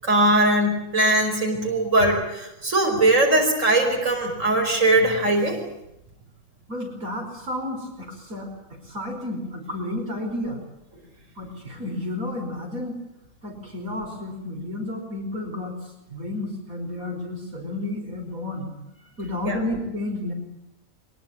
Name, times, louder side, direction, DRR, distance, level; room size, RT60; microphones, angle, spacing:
voice 1, 0.0-5.6 19.5-19.6, right 1 dB, 65° right, 2 dB, 5.6 m, -20 dB
voice 2, 6.7-8.5 8.9-10.6 11.4-12.9 13.4-15.8 16.1-18.7 19.2-20.3, left 1 dB, 80° right, 2 dB, 5.6 m, -31 dB
23.0 x 22.5 x 8.7 m, 0.84 s
omnidirectional pair, 1.5 m